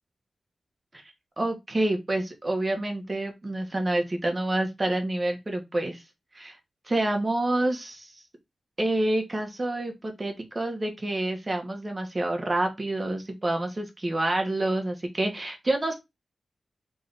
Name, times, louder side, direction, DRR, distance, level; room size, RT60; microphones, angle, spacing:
voice 1, 1.4-6.0 6.3-6.6 6.9-8.1 8.8-15.9, right 1 dB, 25° right, 1.2 m, -28 dB
3.7 x 3.2 x 3.9 m
wide cardioid pair, 115°, 0 cm